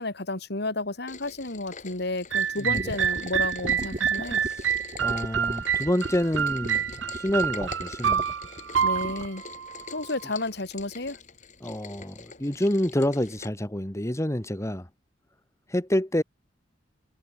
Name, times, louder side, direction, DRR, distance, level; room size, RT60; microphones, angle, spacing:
voice 1, 0.0-4.4 8.8-9.4 9.9-11.2, left 2 dB, 60° left, 3.2 m, -32 dB
Rain, 1.1-13.5, left 5 dB, 45° left, 5.4 m, -46 dB
sound 1, 2.3-10.3, right 8 dB, 85° right, 0.7 m, -28 dB
voice 2, 2.6-2.9 4.4-4.7 5.0-8.2 11.6-14.9 15.7-16.2, left 1 dB, 15° left, 1.7 m, -28 dB
sound 2, 2.8-9.3, right 1 dB, 35° right, 2.6 m, -36 dB
head